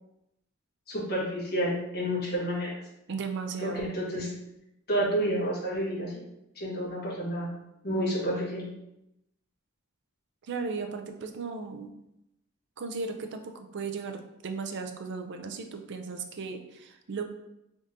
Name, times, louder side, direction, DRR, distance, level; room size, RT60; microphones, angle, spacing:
voice 1, 0.9-2.8 3.6-4.3 4.9-6.2 6.5-7.6 7.8-8.7, equal, 45° left, -7 dB, 1.5 m, -30 dB
voice 2, 3.1-4.0 10.4-11.9 12.8-17.2, right 4 dB, 55° right, 5 dB, 0.4 m, -36 dB
3.8 x 3.5 x 2.7 m, 0.86 s
head